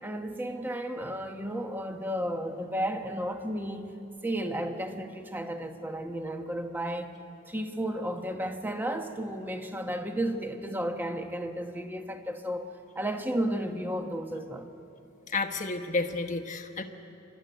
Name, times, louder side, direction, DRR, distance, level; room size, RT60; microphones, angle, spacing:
voice 1, 0.0-3.8 4.2-7.1 7.5-14.7, right 1 dB, 10° right, 5 dB, 1.1 m, -33 dB
voice 2, 15.3-16.8, left 3 dB, 35° left, 5 dB, 1.2 m, -31 dB
28.0 x 13.0 x 9.3 m, 2.8 s
head